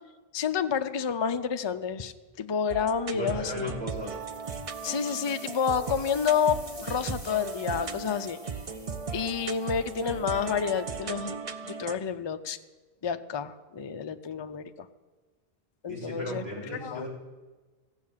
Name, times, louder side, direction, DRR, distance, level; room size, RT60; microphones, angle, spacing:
voice 1, 0.3-3.7 4.8-8.4 9.1-11.4 11.6-12.6 13.0-14.9 15.8-16.4 16.7-17.1, left 7 dB, 35° left, 9 dB, 0.4 m, -29 dB
sound 1, 2.7-12.0, right 5 dB, 40° right, 0.6 m, -37 dB
voice 2, 3.1-4.1 15.9-17.1, equal, 70° right, -3 dB, 3.4 m, -36 dB
sound 2, 3.9-11.0, equal, 25° right, 3.7 m, -50 dB
15.5 x 8.6 x 7.3 m, 1.3 s
omnidirectional pair, 1.1 m